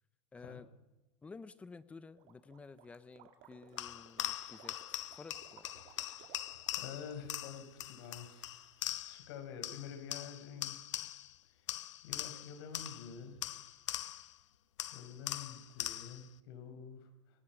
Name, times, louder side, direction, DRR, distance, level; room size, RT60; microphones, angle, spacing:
voice 1, 0.3-0.7 1.2-5.7, left 4 dB, 10° left, 16 dB, 0.6 m, -52 dB
Gurgling, 2.2-9.1, right 8 dB, 45° right, 2.9 m, -61 dB
sound 1, 3.8-9.3 9.6-11.4 11.7-14.4 14.8-16.3, left 13 dB, 80° left, 1.1 m, -42 dB
voice 2, 5.9-6.3 6.8-8.6 9.1-10.8 11.5-11.7 12.0-13.4 14.9-17.4, left 7 dB, 55° left, 6 dB, 5.3 m, -48 dB
26.0 x 18.5 x 6.1 m, 1.1 s
supercardioid pair, 160°, 15 cm